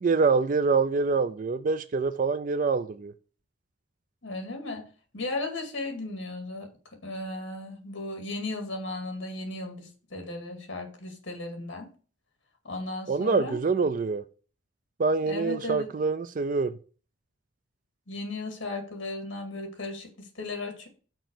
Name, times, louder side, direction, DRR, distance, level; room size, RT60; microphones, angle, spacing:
voice 1, 0.0-3.1 13.1-14.2 15.0-16.7, right 4 dB, 40° right, 0.4 m, -25 dB
voice 2, 4.2-4.8 5.1-6.7 7.0-11.9 12.6-13.6 15.3-15.9 18.1-20.9, left 2 dB, 65° left, 2.1 m, -36 dB
6.1 x 4.5 x 6.5 m
head